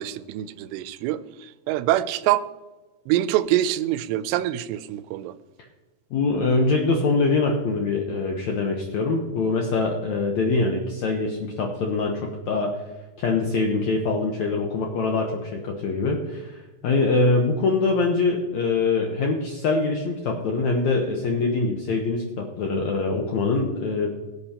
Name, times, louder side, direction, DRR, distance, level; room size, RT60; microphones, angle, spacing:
voice 1, 0.0-2.5 3.1-5.3, right 13 dB, 90° right, 14 dB, 2.7 m, -25 dB
voice 2, 6.1-12.8 13.2-24.1, left 3 dB, 90° left, 1 dB, 1.6 m, -24 dB
18.0 x 8.5 x 2.9 m, 1.1 s
omnidirectional pair, 4.8 m